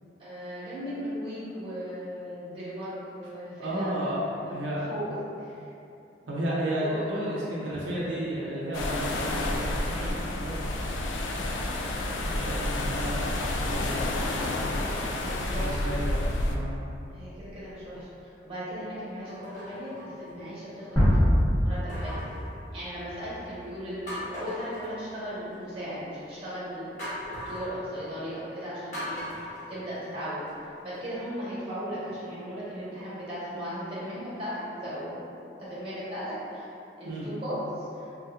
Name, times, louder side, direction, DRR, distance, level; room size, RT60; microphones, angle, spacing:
voice 1, 0.2-5.5 6.8-7.9 12.0-12.2 15.2-15.8 17.1-21.0 21.6-22.2 22.7-26.9 27.2-30.4 30.8-35.2 35.6-36.7 37.0-38.1, equal, 30° right, -10 dB, 1.1 m, -37 dB
voice 2, 3.6-4.2 4.5-4.9 6.3-10.7 12.2-14.5 15.5-16.7 37.0-37.3, right 1 dB, 90° right, -6 dB, 0.6 m, -33 dB
sound 1, 8.7-16.6, left 1 dB, 90° left, 0.4 m, -29 dB
sound 2, 16.3-16.8 17.5-17.6 19.3-20.7 21.9-23.3 23.7-23.8 24.1-25.5 27.0-27.7 28.9-30.5 30.9-31.0, equal, 40° left, 1.1 m, -40 dB
sound 3, 21.0-23.9, equal, 20° left, 1.0 m, -25 dB
3.6 x 2.8 x 2.3 m, 2.7 s
head